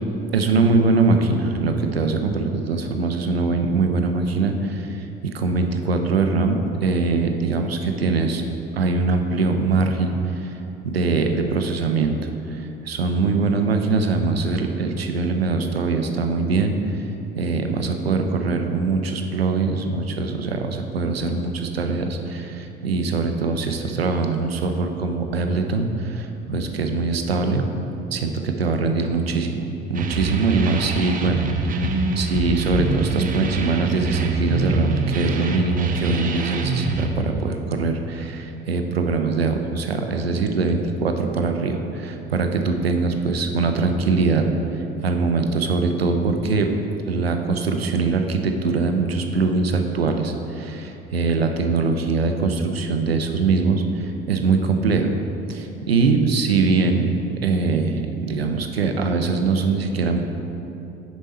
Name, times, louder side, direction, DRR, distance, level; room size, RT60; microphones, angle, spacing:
voice 1, 0.3-8.4 8.7-10.1 10.4-10.5 10.8-12.2 12.5-16.8 17.4-27.6 28.1-29.6 29.9-31.8 32.2-44.5 45.0-46.7 47.1-55.1 55.5-60.2, right 4 dB, 85° right, 5 dB, 0.5 m, -22 dB
sound 1, 29.9-37.1, right 3 dB, 30° right, 0.7 m, -24 dB
6.5 x 5.3 x 4.2 m, 3.0 s
figure-of-eight pair, 60°, 29 cm